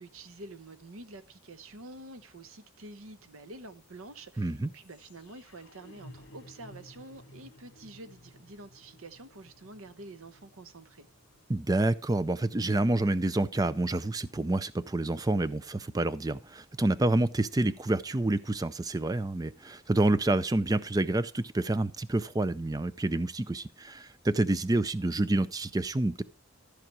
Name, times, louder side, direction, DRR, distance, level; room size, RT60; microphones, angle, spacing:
voice 1, 0.0-11.1, right 2 dB, 75° right, 1.0 m, -48 dB
sound 1, 3.7-13.7, left 1 dB, 55° left, 1.8 m, -56 dB
voice 2, 4.4-4.7 11.5-26.2, right 2 dB, 15° right, 0.4 m, -28 dB
14.0 x 5.0 x 6.0 m
head